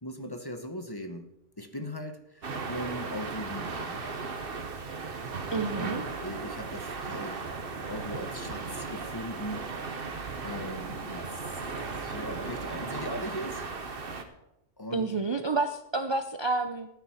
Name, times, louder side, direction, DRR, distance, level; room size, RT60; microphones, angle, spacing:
voice 1, 0.0-4.3 5.7-10.1 10.4-11.5 11.9-13.7 14.8-15.1, equal, 20° left, 7 dB, 1.1 m, -39 dB
sound 1, 2.4-14.2, right 4 dB, 55° right, 1.4 m, -36 dB
voice 2, 5.5-6.0 14.9-16.9, right 3 dB, 30° right, 8 dB, 0.6 m, -29 dB
14.0 x 9.6 x 5.7 m, 0.85 s
omnidirectional pair, 1.1 m